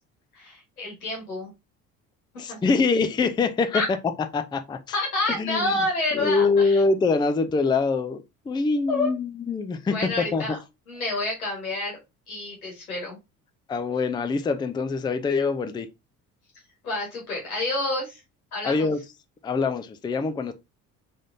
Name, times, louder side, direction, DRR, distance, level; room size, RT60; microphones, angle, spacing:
voice 1, 0.3-1.5 2.5-2.6 3.7-3.9 4.9-6.8 8.9-9.1 9.9-10.6 10.9-12.0 12.3-13.2 16.8-18.2 18.5-18.9, left 2 dB, 90° left, 1.8 m, -28 dB
voice 2, 2.4-3.8 4.3-4.8 5.4-5.7 6.1-8.2 8.5-9.9 10.3-10.6 13.7-15.9 18.6-19.0 19.4-20.5, left 4 dB, 10° left, 0.4 m, -24 dB
3.7 x 3.5 x 2.6 m
hypercardioid pair, 60°, 42 cm